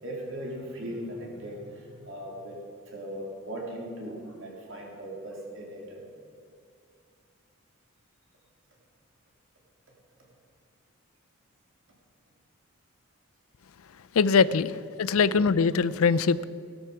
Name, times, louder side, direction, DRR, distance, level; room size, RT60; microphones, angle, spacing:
voice 1, 0.0-6.0 15.2-15.4, equal, 60° right, -2 dB, 3.6 m, -39 dB
voice 2, 14.2-14.7 15.0-16.4, left 5 dB, 75° left, 17 dB, 0.5 m, -22 dB
16.5 x 12.5 x 5.8 m, 2.4 s
head